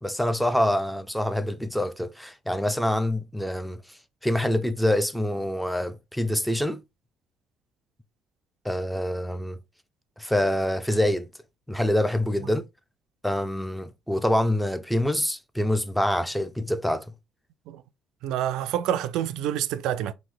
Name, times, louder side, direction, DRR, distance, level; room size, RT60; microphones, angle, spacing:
voice 1, 0.0-6.8 8.6-9.6 10.2-11.3 11.7-12.7 13.2-17.0, left 1 dB, ahead, 0.6 m, -26 dB
voice 2, 18.2-20.1, right 11 dB, 80° right, 0.4 m, -27 dB
4.5 x 2.7 x 3.8 m
supercardioid pair, 80°, 0 cm